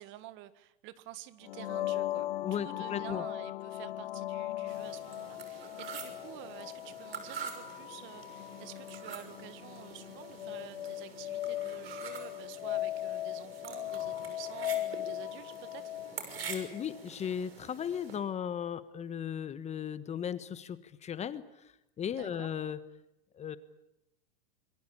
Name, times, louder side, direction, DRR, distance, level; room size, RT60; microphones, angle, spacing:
voice 1, 0.0-16.0 22.1-22.5, right 14 dB, 40° right, 14 dB, 1.7 m, -49 dB
sound 1, 1.4-17.1, left 14 dB, 70° left, 1.3 m, -38 dB
voice 2, 2.4-3.2 16.5-21.4 22.0-22.8 23.3-23.6, left 8 dB, 20° left, 14 dB, 1.3 m, -36 dB
sound 2, 4.7-18.2, right 6 dB, 85° right, 6.3 m, -46 dB
26.5 x 22.0 x 8.6 m, 0.85 s
hypercardioid pair, 115°, 29 cm